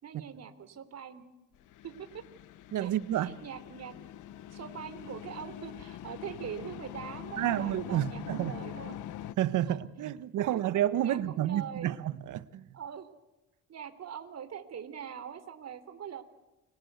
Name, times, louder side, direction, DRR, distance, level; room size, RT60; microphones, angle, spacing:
voice 1, 0.0-1.2 1.8-2.2 2.8-4.0 4.5-9.0 9.7-9.8 10.4-10.6 11.0-11.9 12.7-13.1 13.7-16.2, right 8 dB, 55° right, 3.5 m, -43 dB
freezer inside, 1.5-9.3, left 11 dB, 85° left, 1.2 m, -44 dB
voice 2, 2.7-3.4 7.4-8.5 9.4-12.7, right 12 dB, 80° right, 1.4 m, -30 dB
29.5 x 23.5 x 8.2 m
cardioid pair, 90°, 30 cm